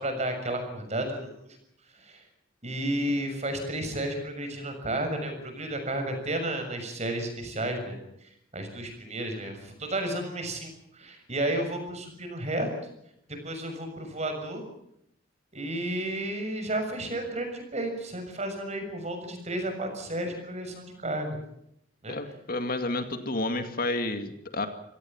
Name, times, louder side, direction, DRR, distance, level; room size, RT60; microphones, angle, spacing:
voice 1, 0.0-1.6 1.9-2.2 2.6-12.7 13.3-14.6 15.5-21.4 22.0-22.2, right 1 dB, 35° right, 6 dB, 6.7 m, -32 dB
voice 2, 22.1-24.7, left 2 dB, 50° left, 7 dB, 2.3 m, -30 dB
27.0 x 17.5 x 7.3 m, 0.76 s
head